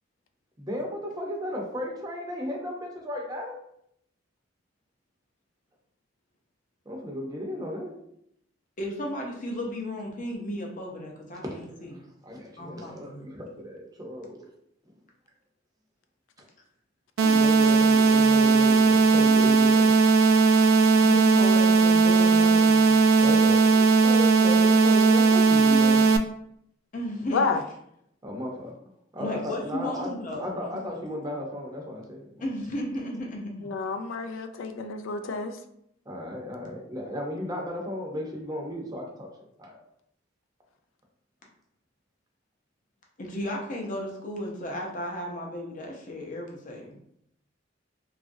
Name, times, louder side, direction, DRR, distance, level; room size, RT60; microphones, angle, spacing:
voice 1, 0.6-3.6 6.9-7.9 11.4-14.5 17.2-19.9 23.2-26.1 28.2-30.1 30.4-32.5 36.1-39.3 39.6-39.8, equal, 20° right, -1 dB, 0.6 m, -35 dB
voice 2, 8.8-11.9 12.6-13.3 21.0-23.0 26.9-27.8 29.2-30.6 32.4-33.7 43.2-47.0, left 1 dB, 45° left, 0 dB, 0.6 m, -34 dB
sound 1, 17.2-26.2, right 4 dB, 90° right, 0.3 m, -18 dB
voice 3, 33.7-35.5, left 4 dB, 80° left, 8 dB, 0.3 m, -29 dB
2.9 x 2.4 x 2.6 m, 0.73 s
head